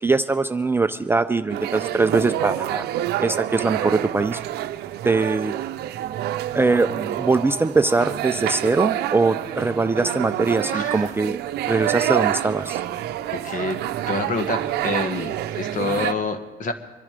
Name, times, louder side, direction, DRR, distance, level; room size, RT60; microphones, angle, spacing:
voice 1, 0.0-2.8 3.2-4.4 5.0-5.5 6.5-11.4 11.7-12.8, right 3 dB, 15° right, 9 dB, 0.4 m, -22 dB
sound 1, 1.5-16.1, right 13 dB, 75° right, 0.6 m, -27 dB
voice 2, 10.7-11.1 13.3-13.8 14.1-15.3 15.5-16.7, left 3 dB, 50° left, 8 dB, 1.5 m, -27 dB
24.0 x 10.5 x 5.1 m, 1.3 s
cardioid pair, 110°, 17 cm